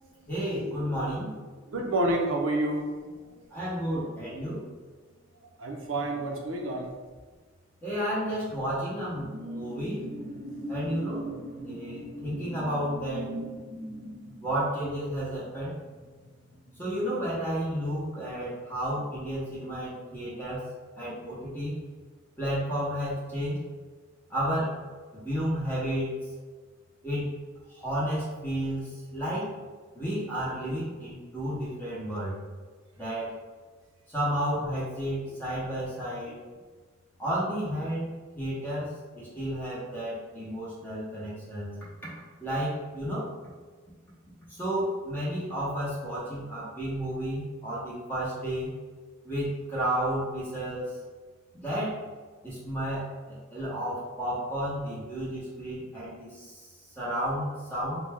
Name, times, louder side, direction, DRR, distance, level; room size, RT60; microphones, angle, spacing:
voice 1, 0.3-1.3 3.5-4.6 7.8-10.0 10.7-13.3 14.4-15.7 16.8-20.7 20.9-21.8 22.4-23.6 24.3-24.7 25.1-26.1 27.0-27.3 27.7-29.5 29.9-32.4 33.0-33.4 34.1-36.4 37.2-41.7 42.4-43.3 44.5-48.7 49.2-51.0 51.5-52.0 52.4-58.0, equal, 10° left, -8 dB, 0.8 m, -32 dB
voice 2, 1.7-2.8 3.2-3.5 5.6-6.9, right 1 dB, 80° right, 1 dB, 0.6 m, -29 dB
sound 1, 8.3-17.3 17.7-17.9, right 1 dB, 35° right, 0.8 m, -40 dB
4.0 x 2.2 x 3.3 m, 1.4 s
head